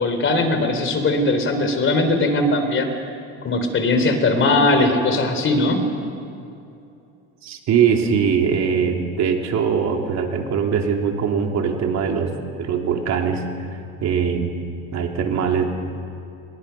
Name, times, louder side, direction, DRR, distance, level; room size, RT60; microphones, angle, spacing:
voice 1, 0.0-2.9 3.4-5.9, left 2 dB, 35° left, 7 dB, 3.3 m, -19 dB
voice 2, 7.4-12.3 12.6-13.4 14.0-14.5 14.9-15.6, right 7 dB, 55° right, 2 dB, 2.9 m, -21 dB
26.5 x 21.0 x 5.8 m, 2.7 s
cardioid pair, 115°, 33 cm